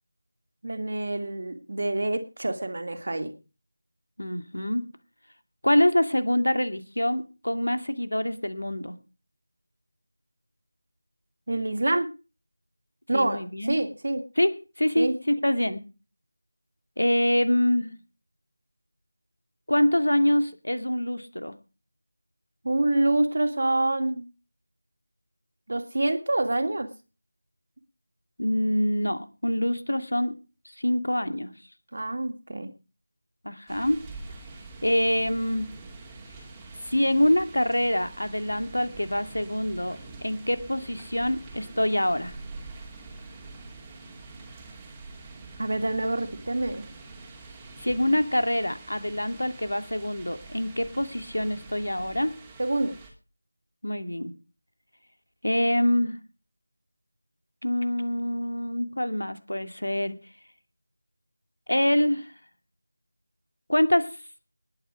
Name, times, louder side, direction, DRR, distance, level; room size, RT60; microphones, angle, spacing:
voice 1, 0.6-3.3 11.5-12.1 13.1-14.2 15.0-15.1 22.6-24.3 25.7-26.9 31.9-32.7 45.6-46.9 52.6-53.0, right 2 dB, 50° right, 8 dB, 2.4 m, -26 dB
voice 2, 4.2-4.9 5.6-9.0 13.1-13.8 14.4-15.8 17.0-18.0 19.7-21.6 28.4-30.4 30.8-31.5 33.4-34.0 34.8-35.7 36.8-42.4 47.8-52.3 53.8-54.3 55.4-56.2 57.6-60.2 61.7-62.3 63.7-64.1, left 1 dB, 75° left, 10 dB, 2.2 m, -25 dB
sound 1, 33.7-53.1, right 3 dB, 10° right, 2.5 m, -45 dB
20.0 x 9.2 x 5.0 m, 0.33 s
figure-of-eight pair, 165°, 0 cm